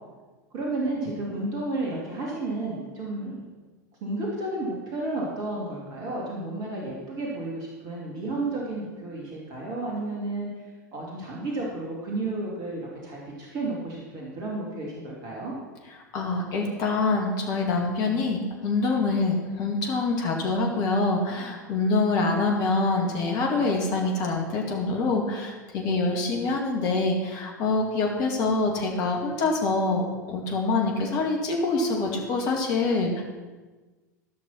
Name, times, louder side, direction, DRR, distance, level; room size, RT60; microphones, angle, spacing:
voice 1, 0.5-3.4 4.0-10.5 10.9-15.5, right 2 dB, 40° right, -3 dB, 2.6 m, -32 dB
voice 2, 16.1-33.2, left 3 dB, 40° left, 1 dB, 2.3 m, -25 dB
14.0 x 6.1 x 5.9 m, 1.3 s
figure-of-eight pair, 85°, 10 cm